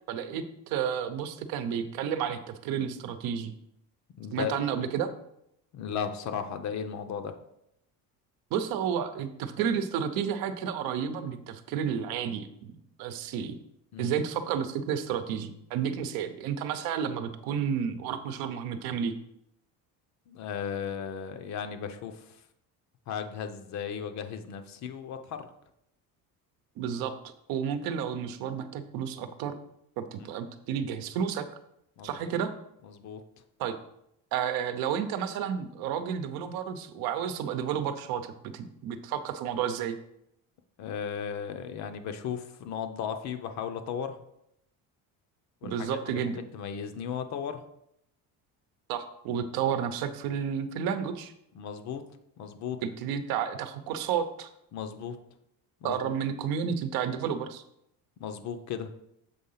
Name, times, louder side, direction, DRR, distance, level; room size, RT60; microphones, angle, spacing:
voice 1, 0.1-3.5 4.3-5.1 8.5-12.7 13.0-13.6 14.0-19.1 26.8-27.1 27.5-29.5 30.0-31.4 32.0-32.5 33.6-33.7 34.3-40.0 45.6-46.4 48.9-51.3 52.8-54.5 55.8-57.6, right 8 dB, 70° right, 10 dB, 0.8 m, -31 dB
voice 2, 4.2-4.6 5.7-7.4 13.9-14.1 20.3-22.4 23.1-25.5 30.2-30.3 32.0-32.3 32.8-33.2 40.8-44.2 45.6-47.6 51.5-52.0 52.4-52.8 54.7-55.2 55.8-56.1 58.2-59.0, left 7 dB, 50° left, 8 dB, 0.7 m, -36 dB
7.1 x 3.8 x 5.6 m, 0.77 s
cardioid pair, 160°, 37 cm